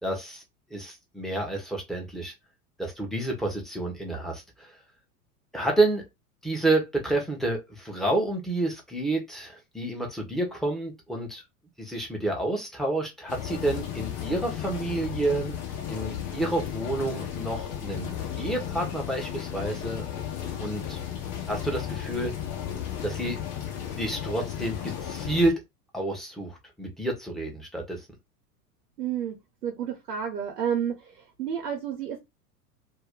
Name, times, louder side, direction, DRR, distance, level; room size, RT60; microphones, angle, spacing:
voice 1, 0.0-0.4 0.7-2.3 2.8-4.7 5.5-6.0 6.4-11.4 11.8-15.6 15.9-18.1 18.4-20.1 20.6-21.0 21.5-22.3 23.0-23.4 24.0-25.6 25.9-28.0, right 2 dB, ahead, 1.0 m, -29 dB
sound 1, 13.3-25.5, left 9 dB, 45° left, 0.9 m, -34 dB
voice 2, 29.0-32.2, right 8 dB, 80° right, 1.0 m, -31 dB
2.7 x 2.2 x 3.6 m
hypercardioid pair, 95°, 46 cm